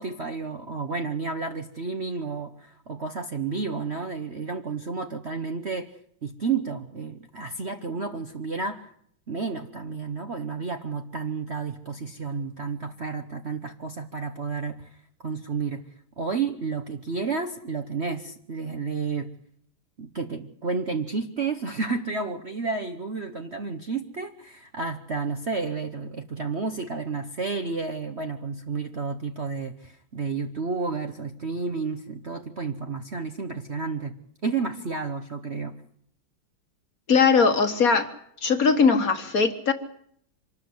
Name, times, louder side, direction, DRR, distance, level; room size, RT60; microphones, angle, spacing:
voice 1, 0.0-5.9 6.2-8.9 9.3-15.8 16.2-19.3 20.0-34.2 34.4-35.8, right 4 dB, 40° right, 6 dB, 1.0 m, -31 dB
voice 2, 37.1-38.1 38.4-39.7, left 5 dB, 45° left, 8 dB, 1.7 m, -20 dB
25.0 x 13.0 x 9.5 m, 0.67 s
omnidirectional pair, 2.2 m